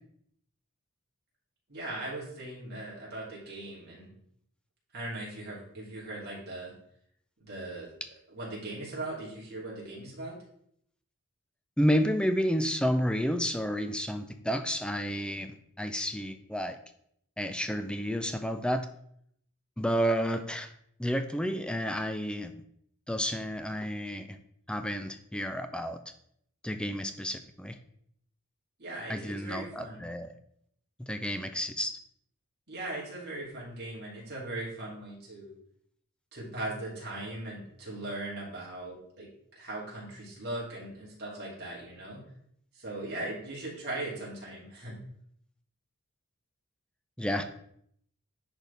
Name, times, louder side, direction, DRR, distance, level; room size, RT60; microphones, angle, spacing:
voice 1, 1.7-4.1 4.9-6.7 7.4-7.9 8.3-10.4 28.8-30.1 32.7-35.5 36.3-42.2 42.7-45.0, right 2 dB, 45° right, -5 dB, 2.9 m, -39 dB
voice 2, 11.8-16.8 17.4-18.9 19.8-20.7 21.0-22.5 23.1-24.4 24.7-26.0 26.6-27.8 29.1-30.3 31.0-32.0 47.2-47.5, equal, 5° left, 8 dB, 0.4 m, -30 dB
10.0 x 4.2 x 3.4 m, 0.70 s
head